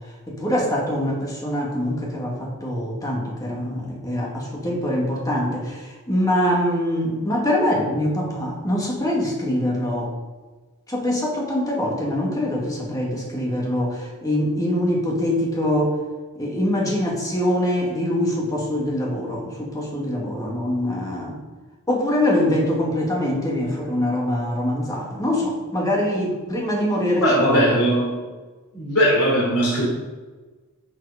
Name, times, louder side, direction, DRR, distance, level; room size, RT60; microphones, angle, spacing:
voice 1, 0.3-10.1 10.9-16.0 16.4-21.4 21.9-27.8, left 1 dB, 15° left, -2 dB, 2.1 m, -24 dB
voice 2, 27.2-28.3 28.7-29.9, equal, 80° left, -4 dB, 3.4 m, -19 dB
11.0 x 6.4 x 5.1 m, 1.3 s
head